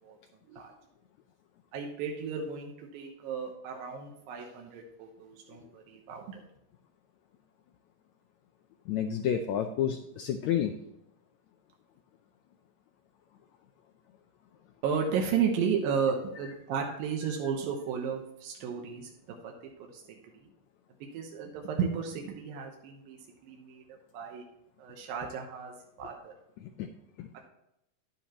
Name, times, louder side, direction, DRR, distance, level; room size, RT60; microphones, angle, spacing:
voice 1, 1.7-6.4 14.8-19.1 19.4-19.5 19.9-20.0 21.1-23.8 24.1-24.4 24.8-26.3, right 6 dB, 85° right, 1 dB, 2.8 m, -33 dB
voice 2, 8.9-10.7 26.8-26.9 27.2-27.3, left 9 dB, 90° left, 5 dB, 1.6 m, -30 dB
10.0 x 9.7 x 3.0 m, 0.84 s
omnidirectional pair, 4.0 m